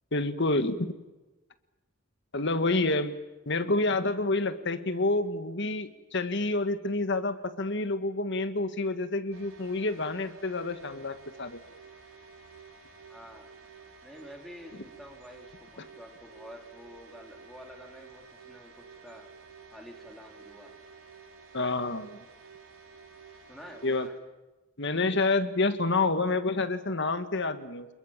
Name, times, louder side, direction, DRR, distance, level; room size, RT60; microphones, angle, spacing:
voice 1, 0.1-0.9 2.3-3.1 3.5-11.6 21.5-22.2 23.8-24.1 24.8-27.9, left 2 dB, 55° left, 10 dB, 1.8 m, -28 dB
sound 1, 9.3-24.1, right 5 dB, 70° right, 5.5 m, -52 dB
voice 2, 13.1-13.5 14.0-19.2 19.7-20.7 23.5-24.2, equal, ahead, 1 dB, 3.9 m, -49 dB
28.0 x 21.5 x 7.5 m, 1.1 s
head